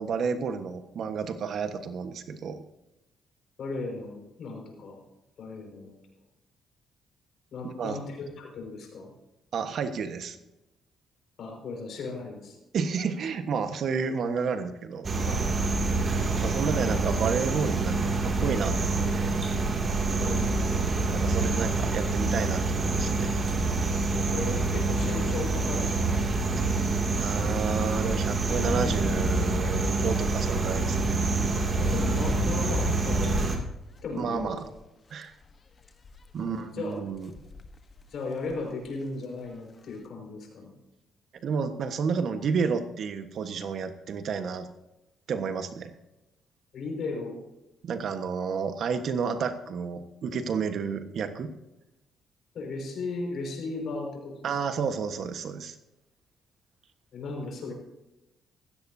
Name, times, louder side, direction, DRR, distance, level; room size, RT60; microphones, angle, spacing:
voice 1, 0.0-2.6 7.6-8.0 9.5-10.4 12.7-15.1 16.4-19.3 21.1-23.3 27.2-31.2 34.2-34.6 35.1-35.3 36.3-37.3 41.4-44.7 45.3-45.9 47.8-51.5 54.4-55.7, right 6 dB, 65° right, 8 dB, 1.3 m, -31 dB
voice 2, 3.6-5.0 5.4-6.0 7.5-9.1 11.4-12.6 15.3-15.7 20.2-20.7 24.3-26.2 31.8-33.4 34.0-34.5 36.4-37.0 38.1-40.7 46.7-47.4 52.5-54.6 57.1-57.7, left 3 dB, 65° left, 1 dB, 5.3 m, -36 dB
sound 1, 15.0-33.6, right 3 dB, 40° right, 2.5 m, -26 dB
sound 2, 22.8-25.0 26.2-34.8 35.2-35.5 35.8-36.3 37.2-38.0 38.5-38.6 38.8-38.9, left 4 dB, 40° left, 1.1 m, -36 dB
16.0 x 15.5 x 2.8 m, 0.96 s
cardioid pair, 90°, 0 cm